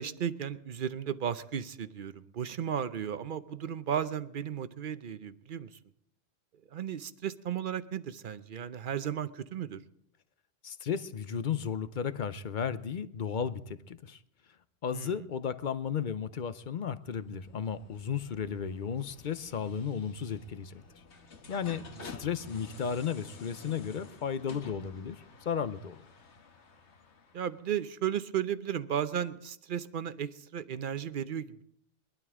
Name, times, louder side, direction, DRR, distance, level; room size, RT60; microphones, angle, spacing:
voice 1, 0.0-5.7 6.7-9.8 14.9-15.3 22.0-22.1 27.3-31.6, right 9 dB, 50° right, 0.8 m, -35 dB
voice 2, 10.6-14.2 14.8-20.8 21.5-26.0, left 7 dB, 50° left, 0.7 m, -34 dB
sound 1, 17.0-27.7, left 4 dB, 65° left, 1.5 m, -51 dB
22.0 x 12.0 x 3.7 m
omnidirectional pair, 1.3 m